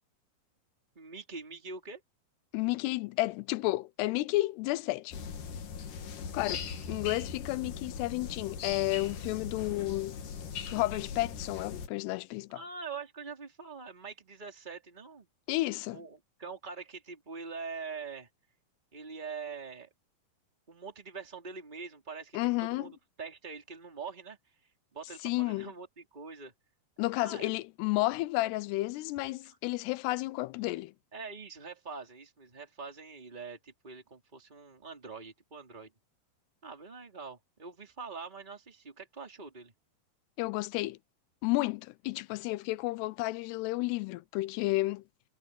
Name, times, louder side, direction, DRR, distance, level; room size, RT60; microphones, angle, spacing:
voice 1, 1.0-2.0 12.5-15.3 15.9-18.3 18.9-19.9 20.7-24.6 24.9-26.5 27.1-27.5 29.4-29.9 31.1-35.9 36.6-39.7, right 5 dB, 10° right, 3.6 m, -44 dB
voice 2, 2.5-5.2 6.3-10.2 10.7-12.6 15.5-16.0 22.3-22.9 25.2-25.7 27.0-30.9 40.4-41.0 41.4-45.0, left 19 dB, 90° left, 2.7 m, -32 dB
sound 1, 5.1-11.9, left 6 dB, 55° left, 3.4 m, -40 dB
omnidirectional pair, 4.6 m